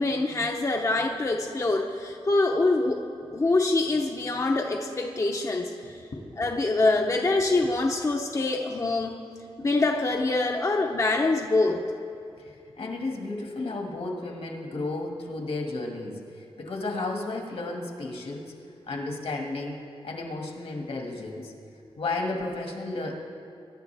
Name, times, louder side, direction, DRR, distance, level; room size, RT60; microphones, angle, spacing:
voice 1, 0.0-3.1 3.3-6.0 6.4-9.2 9.6-11.8, left 2 dB, 30° left, 1 dB, 0.7 m, -25 dB
voice 2, 6.1-6.5 12.4-16.2 16.6-18.5 18.9-21.5 22.0-23.1, left 2 dB, 75° left, 1 dB, 1.9 m, -33 dB
22.5 x 11.0 x 3.4 m, 2.5 s
wide cardioid pair, 120°, 10 cm